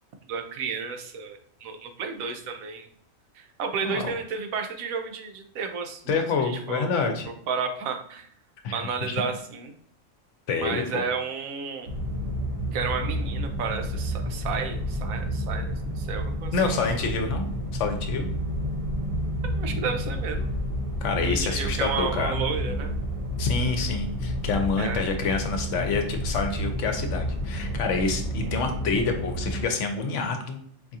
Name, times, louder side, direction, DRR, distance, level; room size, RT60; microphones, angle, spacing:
voice 1, 0.3-2.9 3.3-6.9 7.3-8.3 8.7-9.8 10.6-11.9 12.7-17.2 19.4-20.5 21.2-22.9 24.8-25.0 28.7-28.8, right 5 dB, 85° right, 5 dB, 1.1 m, -32 dB
voice 2, 3.8-4.1 6.1-7.3 8.6-8.8 9.1-9.2 10.5-11.1 16.5-18.3 21.0-22.4 23.4-30.6, left 4 dB, 70° left, 5 dB, 0.9 m, -27 dB
sound 1, 11.9-29.6, equal, 50° right, 0.4 m, -30 dB
4.7 x 2.4 x 2.7 m, 0.65 s
omnidirectional pair, 1.4 m